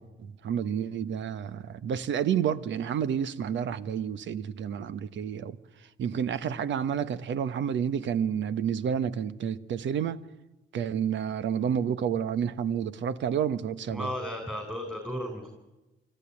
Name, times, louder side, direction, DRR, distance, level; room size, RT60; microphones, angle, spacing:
voice 1, 0.0-5.6 6.0-10.2 10.7-14.1, right 8 dB, 70° right, 1.1 m, -30 dB
voice 2, 13.9-15.5, equal, 5° right, 4.3 m, -34 dB
24.5 x 14.0 x 9.8 m
cardioid pair, 90°, 20 cm